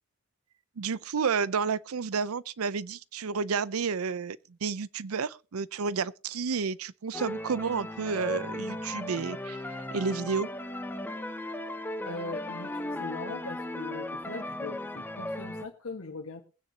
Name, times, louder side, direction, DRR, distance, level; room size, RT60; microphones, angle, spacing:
voice 1, 0.8-10.5, right 5 dB, 85° right, 0.6 m, -31 dB
sound 1, 7.1-15.7, left 1 dB, 10° left, 0.8 m, -36 dB
voice 2, 12.0-16.4, left 3 dB, 85° left, 1.6 m, -40 dB
22.0 x 9.5 x 2.9 m
head